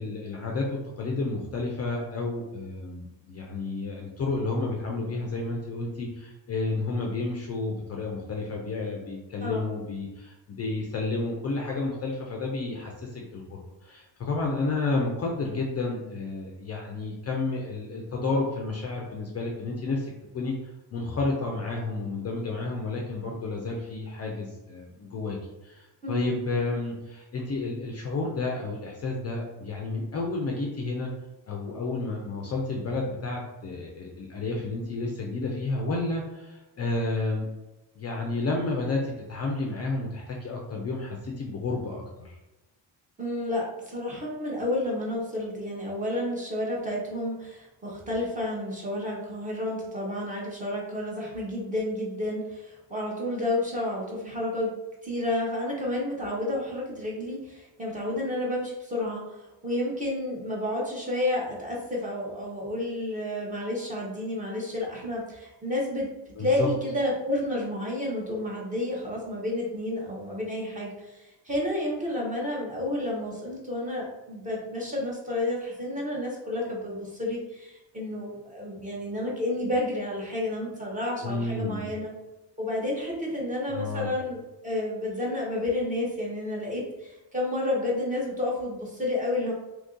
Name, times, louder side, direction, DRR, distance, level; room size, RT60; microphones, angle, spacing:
voice 1, 0.0-20.5 20.9-25.4 25.6-31.1 31.5-37.5 38.0-42.4 66.4-66.7 81.2-81.9 83.7-84.1, left 3 dB, 35° left, -1 dB, 0.4 m, -31 dB
voice 2, 26.0-26.4 43.2-54.7 55.0-82.1 82.6-89.5, left 1 dB, 15° right, -3 dB, 0.7 m, -30 dB
2.8 x 2.6 x 3.6 m, 1.0 s
wide cardioid pair, 170°, 45 cm